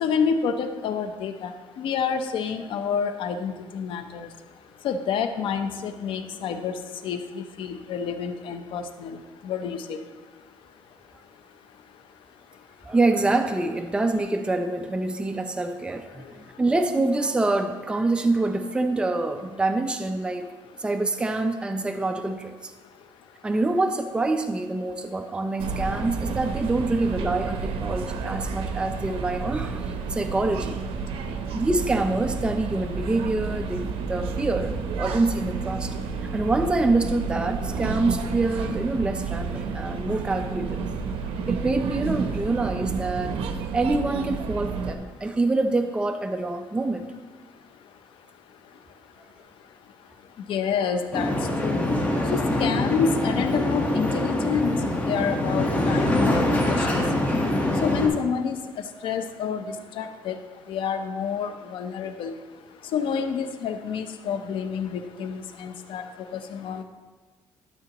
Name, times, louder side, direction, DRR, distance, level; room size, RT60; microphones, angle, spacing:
voice 1, 0.0-1.5 1.8-4.3 4.8-6.8 7.0-10.0 50.5-51.3 51.6-51.9 52.3-54.8 55.0-57.0 57.8-58.6 59.0-59.6 60.0-60.4 60.7-62.3 62.9-66.0 66.3-66.8, left 6 dB, 70° left, 8 dB, 0.7 m, -28 dB
voice 2, 12.9-20.5 20.8-22.5 23.4-30.8 31.5-35.9 36.3-40.8 41.5-43.3 43.7-47.0, right 2 dB, 10° right, 6 dB, 0.5 m, -26 dB
sound 1, 25.6-45.0, right 5 dB, 85° right, 0.7 m, -31 dB
sound 2, 51.1-58.1, left 1 dB, 15° left, 1.3 m, -24 dB
12.5 x 7.0 x 2.9 m, 1.3 s
cardioid pair, 135°, 9 cm